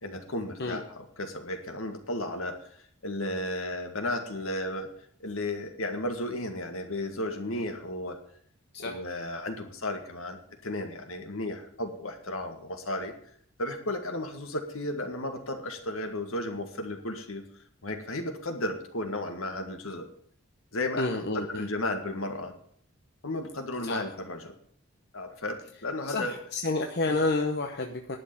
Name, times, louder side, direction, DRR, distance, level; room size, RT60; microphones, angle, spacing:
voice 1, 0.0-4.9 5.2-8.2 8.8-13.1 13.6-17.5 17.8-20.1 20.7-22.5 23.2-24.5 25.1-26.3 27.1-27.2, left 1 dB, 75° left, 5 dB, 1.9 m, -34 dB
voice 2, 21.0-21.7 23.8-24.0 26.1-28.2, left 2 dB, 50° left, 3 dB, 0.9 m, -30 dB
11.0 x 6.7 x 8.6 m, 0.63 s
head